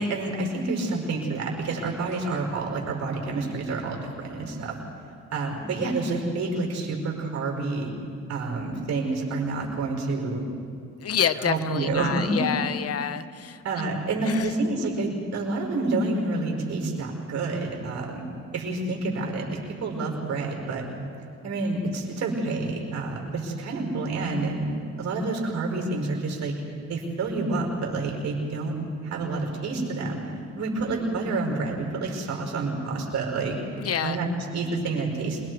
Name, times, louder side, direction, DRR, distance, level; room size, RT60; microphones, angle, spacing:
voice 1, 0.0-4.8 5.3-7.9 8.3-10.4 11.4-12.4 13.6-18.2 18.5-19.5 19.8-20.8 21.4-24.7 25.0-26.6 26.9-28.7 29.0-30.2 30.6-33.6 34.0-35.4, right 3 dB, 60° right, 0 dB, 5.2 m, -28 dB
voice 2, 11.0-13.6 14.3-14.5 33.8-34.2, left 8 dB, 55° left, 12 dB, 0.9 m, -28 dB
27.0 x 21.5 x 4.8 m, 2.3 s
cardioid pair, 90°, 30 cm